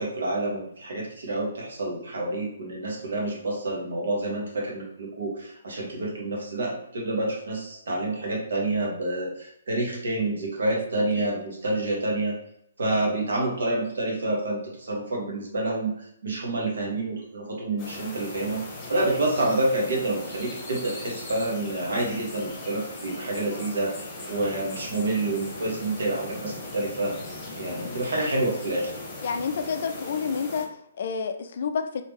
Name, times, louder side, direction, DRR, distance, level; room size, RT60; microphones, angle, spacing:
voice 1, 0.0-12.3 12.8-15.9 16.2-18.6 18.9-27.2 27.6-28.9, right 2 dB, 65° right, -2 dB, 1.2 m, -28 dB
sound 1, 17.8-30.6, left 2 dB, 25° left, 1.2 m, -39 dB
voice 2, 29.2-32.0, left 6 dB, 50° left, 7 dB, 0.3 m, -29 dB
3.4 x 2.8 x 2.9 m, 0.75 s
figure-of-eight pair, 130°, 0 cm